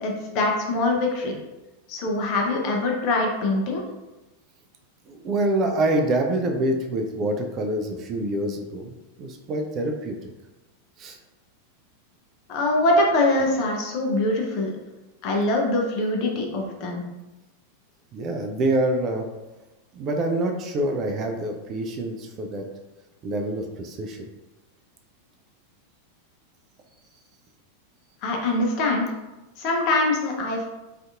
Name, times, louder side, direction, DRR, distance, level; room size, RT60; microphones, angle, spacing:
voice 1, 0.0-1.3 1.9-3.8 12.5-14.7 15.2-17.0 28.2-29.1 29.6-30.7, left 2 dB, 40° left, 0 dB, 0.5 m, -23 dB
voice 2, 5.1-8.9 9.2-10.3 11.0-11.2 18.1-19.3 19.9-22.7 23.2-24.2, right 1 dB, 30° right, 4 dB, 0.3 m, -26 dB
2.5 x 2.4 x 2.3 m, 1.0 s
figure-of-eight pair, 90°, 0 cm